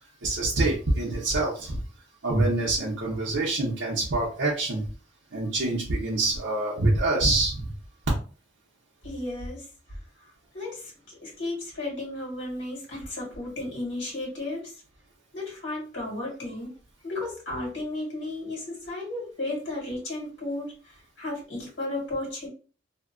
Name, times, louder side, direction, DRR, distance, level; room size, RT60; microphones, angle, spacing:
voice 1, 0.2-1.8 2.2-4.9 5.3-7.7, right 2 dB, 75° right, -5 dB, 0.7 m, -25 dB
voice 2, 9.0-9.6 10.5-14.8 15.3-16.7 17.0-22.5, left 2 dB, 85° left, -3 dB, 1.5 m, -34 dB
2.7 x 2.1 x 2.4 m, 0.38 s
head